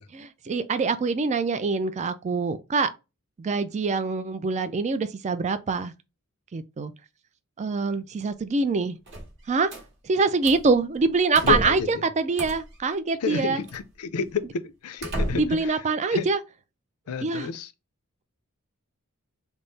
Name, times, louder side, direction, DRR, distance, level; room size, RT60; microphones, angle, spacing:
voice 1, 0.1-2.9 3.4-5.9 6.5-6.9 7.6-9.0 9.5-9.7 10.0-13.6 15.3-16.4 17.2-17.5, right 4 dB, 30° right, 0.4 m, -25 dB
sound 1, 9.1-9.9 10.4-10.7 11.3-11.9 12.4-12.8 13.7-13.8 14.4-14.5 15.0-15.7, right 1 dB, 55° right, 1.2 m, -32 dB
voice 2, 11.4-12.1 13.2-15.7 16.1-16.3 17.1-17.7, left 6 dB, 75° left, 0.5 m, -30 dB
3.5 x 2.0 x 3.9 m
head